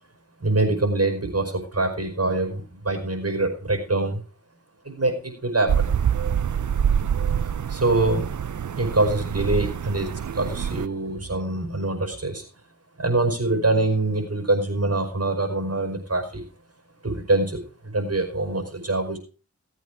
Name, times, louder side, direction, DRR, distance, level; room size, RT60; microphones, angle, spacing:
voice 1, 0.4-4.2 4.8-5.9 7.7-8.3 8.7-10.1 10.3-12.4 13.0-16.4 17.0-17.6 17.9-19.2, right 2 dB, 55° right, 3 dB, 5.1 m, -24 dB
sound 1, 5.7-10.9, right 8 dB, 85° right, 0.6 m, -25 dB
17.5 x 8.3 x 4.8 m, 0.35 s
wide cardioid pair, 55°, 29 cm